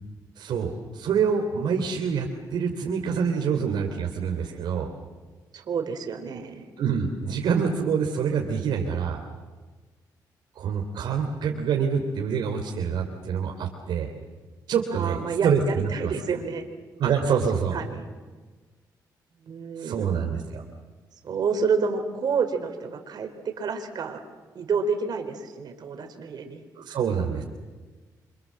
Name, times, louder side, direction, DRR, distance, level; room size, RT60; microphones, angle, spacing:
voice 1, 0.4-4.9 6.8-9.2 10.6-14.1 14.7-16.1 17.0-17.8 19.8-20.6 26.7-27.4, right 6 dB, 80° right, 1 dB, 3.3 m, -26 dB
voice 2, 5.5-6.7 14.9-16.7 17.3-17.4 17.7-18.1 19.4-20.4 21.2-24.2 24.5-26.6, right 5 dB, 65° right, 6 dB, 4.3 m, -29 dB
28.0 x 26.0 x 7.6 m, 1.3 s
cardioid pair, 75°, 8 cm